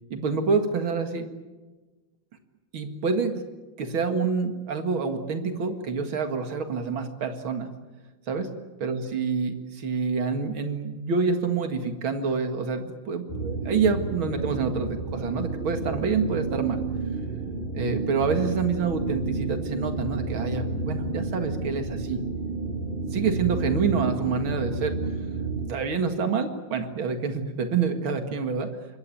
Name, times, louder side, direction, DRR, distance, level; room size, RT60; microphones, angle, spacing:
voice 1, 0.1-1.3 2.7-3.4 3.8-7.7 8.3-8.5 8.8-16.8 17.7-22.2 23.1-25.0 25.7-28.7, right 5 dB, 85° right, 6 dB, 2.8 m, -27 dB
sound 1, 13.3-25.7, right 3 dB, 25° left, 6.1 m, -31 dB
27.0 x 22.0 x 9.1 m, 1.2 s
omnidirectional pair, 2.2 m